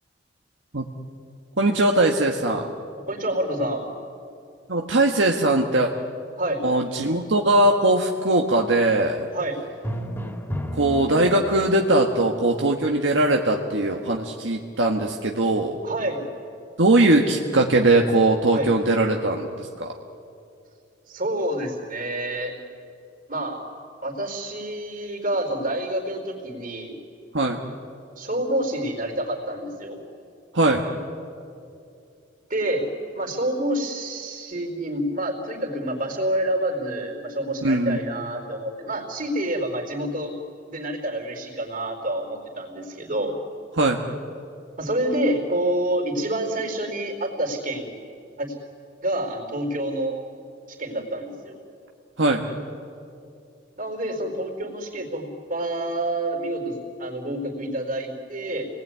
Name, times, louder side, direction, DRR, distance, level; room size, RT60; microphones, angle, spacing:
voice 1, 1.6-2.7 4.7-5.9 6.6-9.3 10.7-15.8 16.8-19.9 27.3-27.6 30.5-30.8 37.6-38.0 43.8-44.0 52.2-52.5, right 2 dB, 80° right, 1 dB, 1.6 m, -20 dB
voice 2, 3.1-3.9 6.4-6.6 9.3-9.6 15.8-16.2 18.5-18.7 21.1-22.5 23.3-23.6 24.0-26.9 28.2-30.0 32.5-32.9 33.1-40.3 40.7-43.3 44.8-48.0 48.4-48.6 49.0-50.2 50.7-51.6 53.8-58.7, right 1 dB, 45° right, 3 dB, 4.3 m, -28 dB
Drum, 9.8-11.9, equal, 10° left, 2.5 m, -32 dB
28.0 x 20.0 x 9.5 m, 2.5 s
head